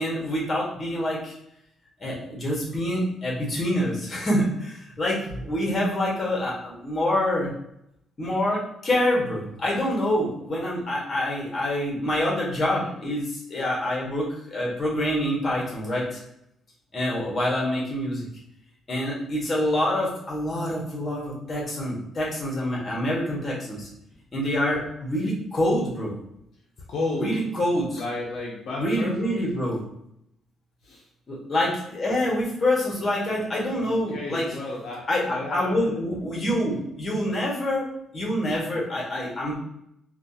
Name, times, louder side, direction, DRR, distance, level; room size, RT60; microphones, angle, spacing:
voice 1, 0.0-1.3 2.0-7.5 8.2-16.2 16.9-18.3 18.9-23.9 24.3-26.2 27.1-28.0 28.7-29.8 31.3-34.5 35.1-37.9 38.1-39.5, left 1 dB, 35° left, -4 dB, 1.4 m, -26 dB
voice 2, 26.9-27.4 27.9-29.4 30.8-31.0 33.9-35.8, left 2 dB, 70° left, -3 dB, 0.7 m, -32 dB
3.3 x 2.5 x 2.8 m, 0.78 s
cardioid pair, 90°, 0 cm